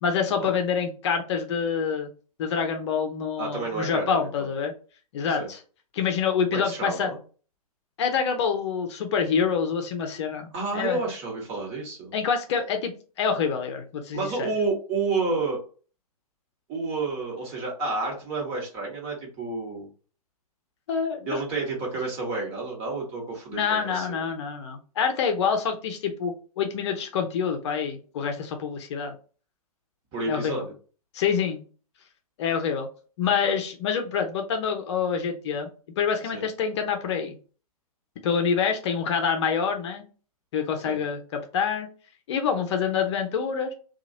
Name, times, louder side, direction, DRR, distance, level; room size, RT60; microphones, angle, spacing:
voice 1, 0.0-2.1 2.4-4.7 5.1-5.6 5.9-7.1 8.0-10.5 10.7-11.0 12.1-14.5 20.9-21.4 23.5-29.1 30.3-30.7 31.1-31.6 32.4-32.9 33.2-35.7 36.0-37.3 38.2-40.0 40.5-41.9 42.3-43.7, left 6 dB, 45° left, 5 dB, 0.6 m, -26 dB
voice 2, 3.4-4.5 5.4-5.5 6.5-7.2 10.5-12.1 14.1-15.6 16.7-19.9 21.3-24.2 30.1-30.7 36.3-36.4 40.8-41.0, right 3 dB, 30° right, -1 dB, 1.3 m, -30 dB
2.9 x 2.4 x 2.7 m, 0.38 s
figure-of-eight pair, 115°, 19 cm